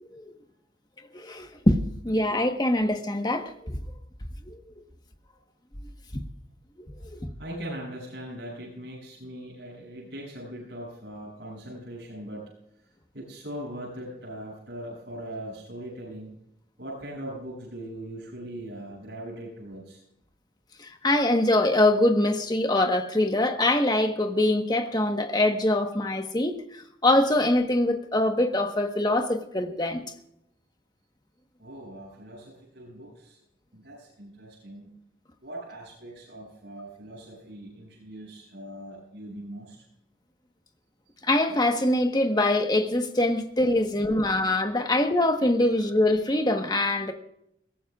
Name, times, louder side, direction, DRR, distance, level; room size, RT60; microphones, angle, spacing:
voice 1, 1.1-3.8 4.5-4.6 20.8-30.0 41.2-47.1, left 1 dB, 20° left, 1.3 m, -24 dB
voice 2, 7.4-12.4 13.1-16.3 16.8-20.0 31.6-33.4 33.7-34.9 35.4-39.8, right 1 dB, 70° right, 7.7 m, -40 dB
22.5 x 17.0 x 2.5 m
head